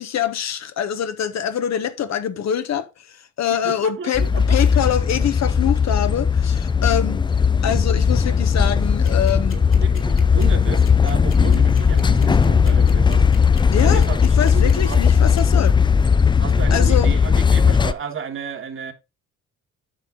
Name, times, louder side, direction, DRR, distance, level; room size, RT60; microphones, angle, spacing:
voice 1, 0.0-7.2 7.6-9.6 13.7-15.8 16.7-17.1, left 9 dB, 60° left, 1.1 m, -24 dB
voice 2, 3.5-4.8 9.5-13.3 13.8-15.0 16.4-18.9, right 6 dB, 45° right, 1.5 m, -33 dB
sound 1, 4.1-17.9, left 6 dB, 15° left, 0.4 m, -17 dB
sound 2, 9.0-15.4, left 5 dB, 45° left, 2.5 m, -42 dB
9.0 x 5.6 x 3.8 m
cardioid pair, 90°, 30 cm